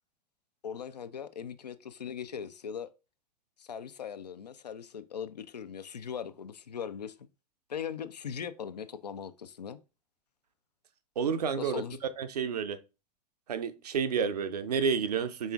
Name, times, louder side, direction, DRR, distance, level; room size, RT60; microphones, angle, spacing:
voice 1, 0.6-2.9 3.6-7.3 7.7-9.8 11.6-12.0, left 7 dB, 80° left, 0.5 m, -39 dB
voice 2, 11.2-11.8 12.2-12.8 13.5-15.5, right 6 dB, 70° right, 0.6 m, -30 dB
5.4 x 3.6 x 2.3 m
figure-of-eight pair, 90°, 21 cm